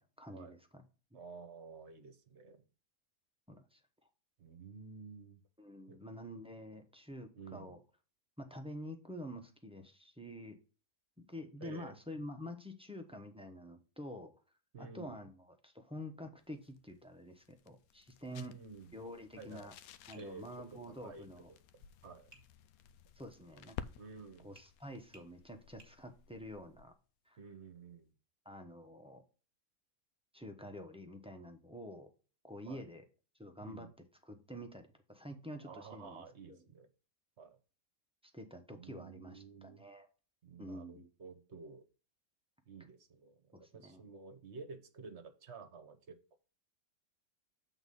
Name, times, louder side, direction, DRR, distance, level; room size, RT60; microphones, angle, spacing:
voice 1, 0.2-0.6 3.5-3.8 5.6-7.8 8.4-10.6 11.3-14.3 14.8-15.3 15.6-18.5 18.9-19.7 20.1-21.5 23.2-23.8 24.4-26.9 27.3-27.4 28.4-29.2 30.3-32.1 32.4-33.0 33.4-33.9 34.2-36.6 38.3-40.1 40.6-41.1 43.6-44.0, left 1 dB, 5° right, 5 dB, 0.8 m, -48 dB
voice 2, 1.1-2.6 4.4-5.4 5.9-6.0 7.3-7.8 11.6-11.9 14.7-15.2 18.3-18.9 19.4-19.7 20.1-20.4 20.7-21.3 21.7-22.3 24.0-24.5 27.4-28.1 32.6-32.9 33.6-33.9 35.6-36.9 37.4-37.6 38.7-39.8 40.4-41.8 42.7-46.4, right 5 dB, 55° right, 9 dB, 1.2 m, -51 dB
sound 1, 16.4-27.0, left 9 dB, 80° left, 1.0 m, -54 dB
Tap, 20.1-20.4 22.3-22.5 24.5-24.7 25.1-25.3 25.8-26.0, right 2 dB, 20° right, 1.6 m, -60 dB
8.1 x 4.0 x 5.4 m, 0.36 s
omnidirectional pair, 1.5 m